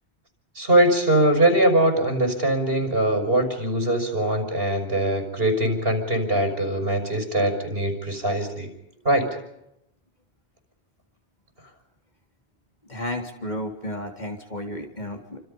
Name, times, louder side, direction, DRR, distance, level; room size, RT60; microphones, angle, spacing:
voice 1, 0.6-8.7 9.0-9.3, right 1 dB, 65° right, 6 dB, 5.9 m, -22 dB
voice 2, 12.8-15.4, left 1 dB, 45° left, 3 dB, 3.7 m, -32 dB
29.5 x 26.0 x 5.5 m, 0.82 s
omnidirectional pair, 1.0 m